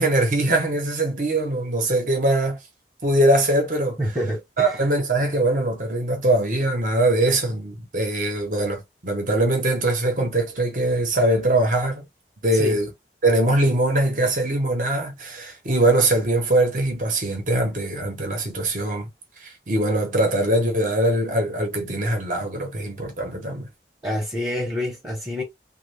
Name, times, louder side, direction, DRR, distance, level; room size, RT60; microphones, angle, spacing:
voice 1, 0.0-2.6 3.0-4.0 4.6-12.1 12.4-12.9 13.2-19.1 19.4-23.7, right 1 dB, 45° right, 1.0 m, -22 dB
voice 2, 4.0-4.8 12.6-12.7 24.0-25.4, left 1 dB, 20° right, 1.0 m, -27 dB
3.1 x 2.4 x 3.4 m
head